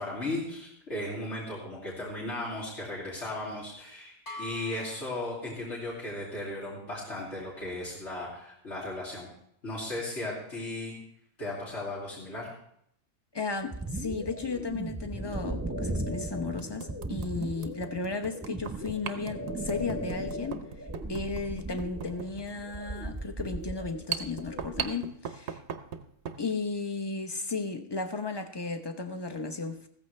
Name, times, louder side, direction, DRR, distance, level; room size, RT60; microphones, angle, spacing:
voice 1, 0.0-9.3 9.6-10.9 11.4-12.5, left 1 dB, 80° left, 3.2 m, -36 dB
sound 1, 4.3-6.0, left 1 dB, 55° left, 3.1 m, -45 dB
voice 2, 13.3-20.6 21.1-25.6 26.4-29.9, left 4 dB, 25° left, 0.8 m, -34 dB
sound 2, 13.6-13.8 15.3-15.4 15.9-16.0 16.6-26.4, right 8 dB, 75° right, 1.1 m, -40 dB
sound 3, 13.7-24.9, right 1 dB, 15° right, 0.9 m, -37 dB
15.5 x 14.0 x 3.2 m
omnidirectional pair, 1.2 m